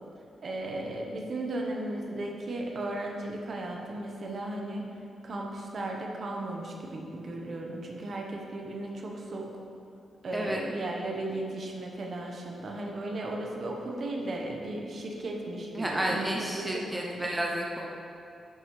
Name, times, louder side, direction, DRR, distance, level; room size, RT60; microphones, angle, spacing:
voice 1, 0.4-4.9 5.2-9.5 10.2-17.2, right 1 dB, 50° right, 0 dB, 1.1 m, -35 dB
voice 2, 15.7-17.9, right 1 dB, 10° right, -1 dB, 0.7 m, -31 dB
10.5 x 6.2 x 3.3 m, 2.6 s
wide cardioid pair, 125°, 0 cm